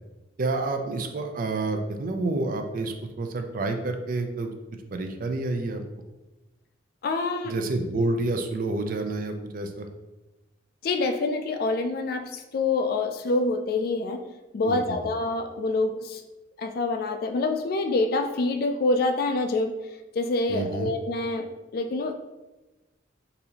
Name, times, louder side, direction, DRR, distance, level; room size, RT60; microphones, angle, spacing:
voice 1, 0.4-4.5 4.9-5.8 7.4-9.9 14.6-15.0 20.5-20.9, right 2 dB, 45° right, 5 dB, 0.4 m, -29 dB
voice 2, 7.0-7.5 10.8-14.2 14.5-16.2 16.6-19.7 20.2-21.5 21.7-22.1, left 3 dB, 50° left, 6 dB, 0.3 m, -26 dB
4.0 x 2.7 x 2.8 m, 1.1 s
head